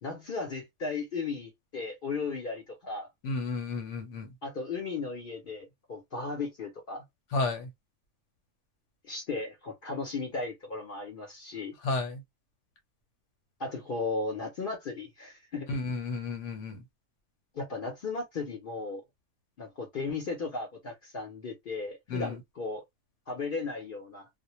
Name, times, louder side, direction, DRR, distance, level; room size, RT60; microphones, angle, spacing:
voice 1, 0.0-3.1 4.4-7.0 9.0-11.8 13.6-15.7 17.5-19.0 19.6-22.8 23.3-24.3, left 4 dB, 55° left, 0.7 m, -36 dB
voice 2, 3.2-4.3 7.3-7.7 11.8-12.2 15.7-16.8 22.1-22.4, left 3 dB, 80° left, 1.1 m, -32 dB
2.2 x 2.0 x 2.9 m
omnidirectional pair, 1.2 m